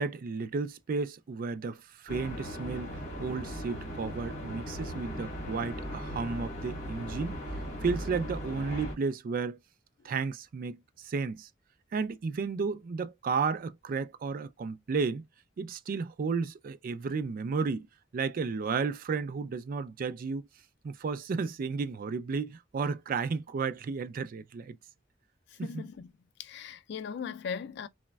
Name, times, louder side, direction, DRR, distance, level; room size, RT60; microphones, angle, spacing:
voice 1, 0.0-7.4 7.8-9.6 10.0-11.5 11.9-15.2 15.6-17.9 18.1-20.5 20.8-24.8 25.6-25.8, right 4 dB, 50° right, 0.3 m, -33 dB
sound 1, 2.1-9.0, equal, 40° left, 1.2 m, -38 dB
voice 2, 25.5-26.1 26.4-27.9, left 6 dB, 60° left, 0.3 m, -39 dB
3.9 x 2.1 x 2.2 m
head